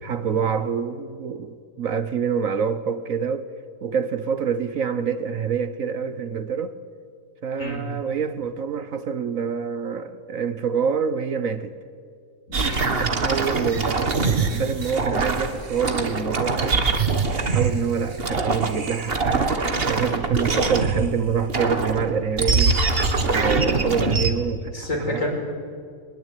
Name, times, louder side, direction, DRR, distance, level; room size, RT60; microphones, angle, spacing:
voice 1, 0.0-3.5 3.8-6.7 7.4-11.7 13.0-16.8 17.3-19.5 19.9-22.8 23.2-25.3, right 6 dB, 60° right, 1.4 m, -26 dB
voice 2, 12.5-12.9 24.7-25.3, left 1 dB, 55° left, 5.4 m, -28 dB
sound 1, 12.5-17.8 18.1-21.1 21.5-24.3, right 4 dB, 40° right, 1.8 m, -23 dB
23.5 x 21.0 x 9.2 m
omnidirectional pair, 1.7 m